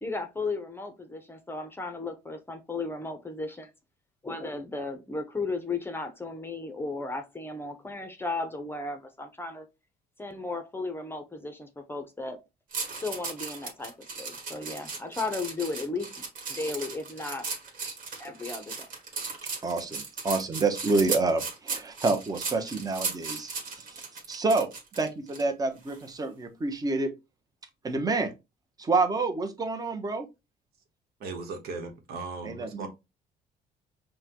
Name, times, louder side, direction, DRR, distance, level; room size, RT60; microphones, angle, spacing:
voice 1, 0.0-3.7 4.2-9.7 10.2-12.4 13.0-17.5 18.2-18.9, left 3 dB, 15° left, 0.7 m, -35 dB
sound 1, 12.7-25.4 25.9-26.1, right 4 dB, 55° right, 1.5 m, -36 dB
voice 2, 19.6-23.9 24.3-24.7 25.0-27.1 27.8-28.3 28.8-30.2 32.5-32.9, right 3 dB, 20° right, 0.8 m, -28 dB
voice 3, 31.2-32.9, right 3 dB, 70° right, 1.1 m, -37 dB
5.5 x 2.2 x 2.9 m
cardioid pair, 110°, 17 cm